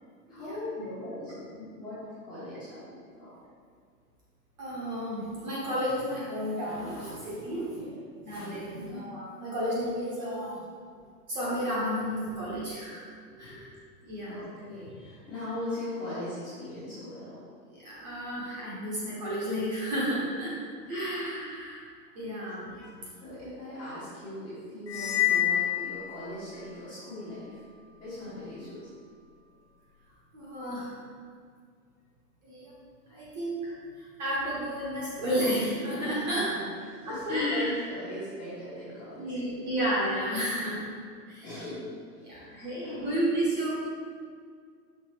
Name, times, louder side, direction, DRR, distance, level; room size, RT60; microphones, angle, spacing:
voice 1, 0.3-3.3 7.6-7.9 8.7-9.0 12.3-12.4 13.3-13.6 14.3-17.4 23.2-27.6 28.0-28.9 36.1-36.6 37.0-39.6 41.4-41.9 42.2-43.1, left 1 dB, 10° left, -13 dB, 1.2 m, -39 dB
voice 2, 4.6-7.8 8.2-10.6 11.3-13.1 13.4-13.7 14.0-14.5 17.7-20.5 20.9-21.8 22.1-22.9 30.3-31.0 32.4-32.7 33.1-36.5 37.0-37.7 38.1-38.2 39.2-40.8 41.3-41.5 42.2-43.8, equal, 25° right, -7 dB, 1.2 m, -32 dB
sound 1, 24.9-26.7, left 12 dB, 90° left, 1.4 m, -28 dB
6.0 x 4.0 x 4.7 m, 2.1 s
hypercardioid pair, 180°, 49 cm